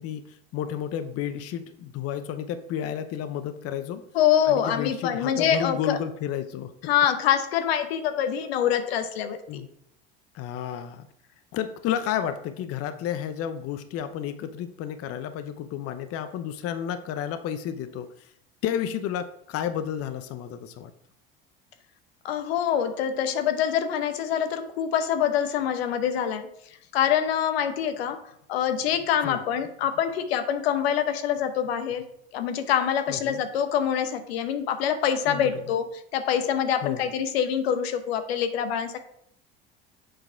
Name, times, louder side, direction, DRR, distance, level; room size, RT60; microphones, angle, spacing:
voice 1, 0.0-4.0 4.5-6.7 9.5-9.7 10.3-11.1 11.5-18.3 18.6-20.9 29.2-29.4 33.1-33.4 35.3-35.6 36.8-37.0, left 9 dB, 50° left, 11 dB, 0.7 m, -31 dB
voice 2, 4.1-6.0 6.8-9.6 22.2-26.5 26.9-28.2 28.5-32.0 32.3-39.0, left 9 dB, 80° left, 9 dB, 0.8 m, -25 dB
7.7 x 4.0 x 4.5 m, 0.73 s
hypercardioid pair, 80°, 30 cm